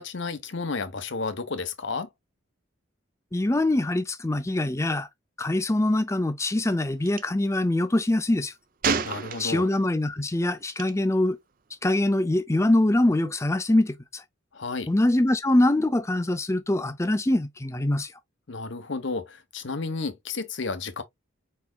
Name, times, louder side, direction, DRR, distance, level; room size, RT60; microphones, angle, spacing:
voice 1, 0.0-2.1 9.0-9.7 14.5-14.9 18.5-21.0, left 4 dB, 65° left, 0.9 m, -32 dB
voice 2, 3.3-5.1 5.4-8.5 9.4-11.4 11.8-14.2 14.9-18.1, left 1 dB, 15° left, 0.5 m, -23 dB
Gunshot gunfire, 7.1-7.2 8.8-9.8 10.7-10.9, right 5 dB, 45° right, 0.5 m, -28 dB
4.8 x 4.3 x 2.3 m
head